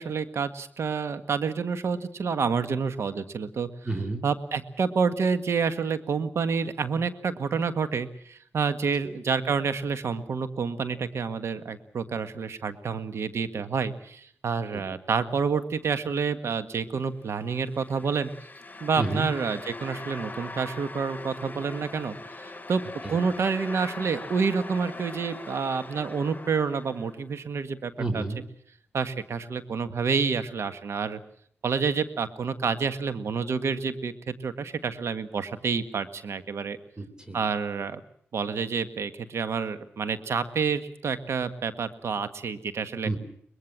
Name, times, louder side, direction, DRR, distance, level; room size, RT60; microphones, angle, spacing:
voice 1, 0.0-3.7 4.2-18.3 18.8-22.8 23.1-28.2 28.9-31.2 31.6-36.8 37.3-38.0 38.3-43.1, right 5 dB, 75° right, 11 dB, 1.7 m, -28 dB
voice 2, 3.8-4.2 9.0-9.1 14.7-14.8 19.0-19.3 23.0-23.2 28.0-28.4 37.0-37.4 43.0-43.2, right 2 dB, 20° right, 8 dB, 3.9 m, -30 dB
sound 1, 17.4-27.2, left 2 dB, 35° left, 7.0 m, -41 dB
23.0 x 20.5 x 7.4 m, 0.63 s
cardioid pair, 55°, 5 cm